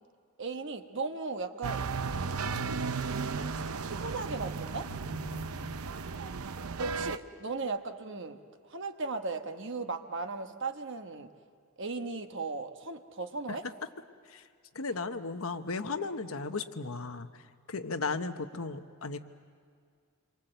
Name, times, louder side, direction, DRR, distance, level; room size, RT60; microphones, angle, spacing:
voice 1, 0.4-1.9 3.3-4.9 6.8-8.4 8.7-11.3 11.8-13.6, right 3 dB, 60° right, 6 dB, 1.2 m, -37 dB
sound 1, 1.6-7.2, right 4 dB, 90° right, 0.8 m, -35 dB
voice 2, 4.9-5.8 13.5-13.7 14.3-14.4 14.7-19.2, left 3 dB, 75° left, 9 dB, 1.1 m, -36 dB
27.5 x 23.5 x 8.0 m, 2.1 s
head